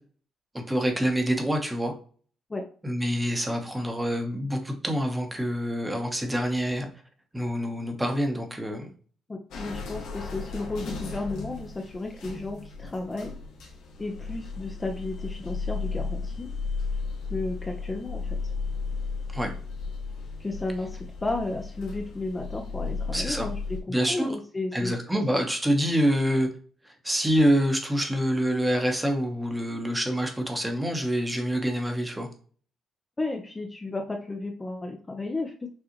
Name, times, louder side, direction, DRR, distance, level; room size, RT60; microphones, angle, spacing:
voice 1, 0.5-1.9 2.8-6.9 7.3-8.9 19.3-19.5 23.1-23.5 23.9-24.3 24.7-26.5 26.8-32.3, equal, 10° right, 4 dB, 1.1 m, -26 dB
voice 2, 9.3-13.3 14.0-16.5 17.3-18.4 20.4-24.9 33.2-35.7, left 2 dB, 25° left, 3 dB, 0.7 m, -33 dB
sound 1, 9.5-23.8, left 4 dB, 80° left, 1.5 m, -35 dB
6.3 x 2.4 x 3.0 m, 0.43 s
cardioid pair, 90°, 0 cm